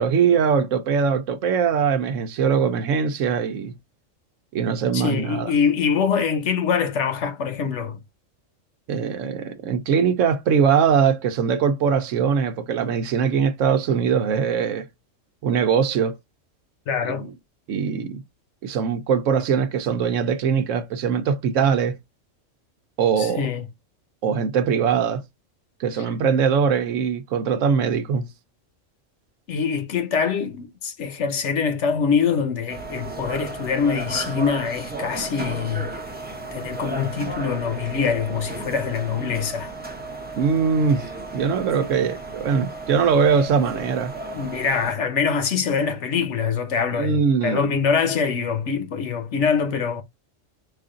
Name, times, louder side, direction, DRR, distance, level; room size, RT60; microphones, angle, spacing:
voice 1, 0.0-3.7 4.5-5.5 8.9-14.8 15.4-16.1 17.7-18.2 18.6-22.0 23.0-23.4 24.2-25.2 25.8-28.3 40.4-41.0 41.3-44.1 46.9-47.6, right 6 dB, 75° right, 1.0 m, -21 dB
voice 2, 4.9-8.0 16.9-17.3 23.2-23.7 26.0-26.1 29.5-36.0 36.5-39.7 44.3-50.0, left 6 dB, 65° left, 1.0 m, -24 dB
sound 1, 32.7-44.9, right 2 dB, 10° right, 0.6 m, -34 dB
4.9 x 2.5 x 3.7 m
omnidirectional pair, 1.4 m